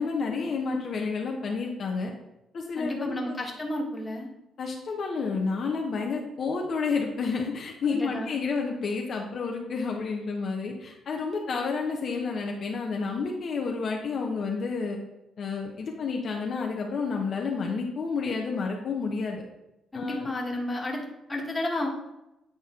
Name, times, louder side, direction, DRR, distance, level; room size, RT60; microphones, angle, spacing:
voice 1, 0.0-2.1 2.5-3.4 4.6-15.0 15.4-19.4 19.9-20.3, left 4 dB, 55° left, 1 dB, 0.9 m, -30 dB
voice 2, 2.8-4.3 7.9-8.4 19.9-21.0 21.3-21.9, left 1 dB, 20° left, 0 dB, 1.5 m, -32 dB
8.8 x 4.1 x 3.7 m, 0.91 s
cardioid pair, 90°, 0 cm